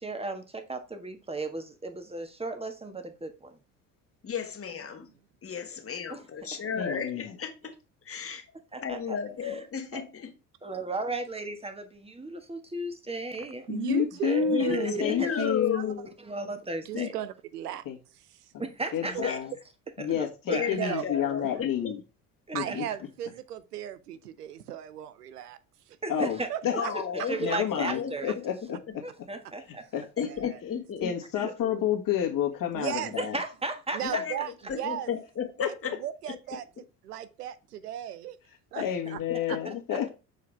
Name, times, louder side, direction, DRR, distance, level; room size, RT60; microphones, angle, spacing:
voice 1, 0.0-3.6 6.1-6.2 8.7-9.2 9.4-9.5 10.6-13.7 14.2-14.9 15.2-15.3 16.2-17.1 18.6-19.4 20.0-21.0 22.5-22.9 26.0-26.8 27.1-28.3 29.0-29.8 31.4-31.5 33.2-34.2 39.6-39.7, right 2 dB, 15° right, 1.5 m, -35 dB
voice 2, 4.2-5.1 5.4-7.8 8.0-8.5 8.8-10.3 14.5-16.1 16.9-17.1 19.0-19.4 20.5-21.9 26.7-27.4 27.7-28.4 30.2-31.1 31.6-31.8 34.0-35.9 36.3-36.6 39.3-39.6, left 7 dB, 30° left, 1.6 m, -34 dB
voice 3, 6.8-7.3 13.7-16.0 17.8-18.0 18.5-18.6 18.9-19.5 20.0-22.0 22.5-22.8 26.1-26.9 27.4-29.0 29.7-30.3 31.0-33.4 35.6-36.0 38.8-40.1, left 9 dB, 45° left, 1.8 m, -30 dB
voice 4, 13.4-15.9 16.8-17.8 18.3-18.5 19.1-19.2 20.7-21.3 22.5-25.6 25.9-26.9 27.5-27.6 30.2-30.6 32.7-33.2 33.9-35.1 35.6-38.4 38.7-38.8 39.1-39.2 39.5-39.6, right 11 dB, 90° right, 0.7 m, -36 dB
6.9 x 4.7 x 3.4 m
hypercardioid pair, 65°, 45 cm